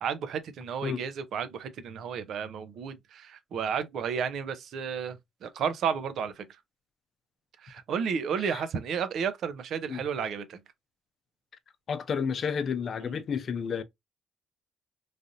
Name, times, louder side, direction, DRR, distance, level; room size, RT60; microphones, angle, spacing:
voice 1, 0.0-6.5 7.6-10.6 13.0-13.2, right 7 dB, 70° right, 0.6 m, -32 dB
voice 2, 11.9-13.8, left 6 dB, 55° left, 0.5 m, -31 dB
3.2 x 2.6 x 2.5 m
cardioid pair, 90°, 0 cm